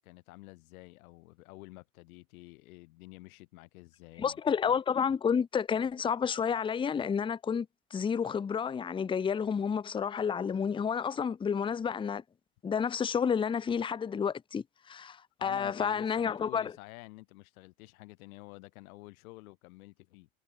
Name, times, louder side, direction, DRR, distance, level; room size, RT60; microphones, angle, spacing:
voice 1, 0.0-4.5 15.4-20.3, left 22 dB, 65° left, 3.3 m, -50 dB
voice 2, 4.2-7.7 7.9-12.2 12.6-16.7, left 7 dB, 10° left, 0.6 m, -30 dB
hypercardioid pair, 90°, 46 cm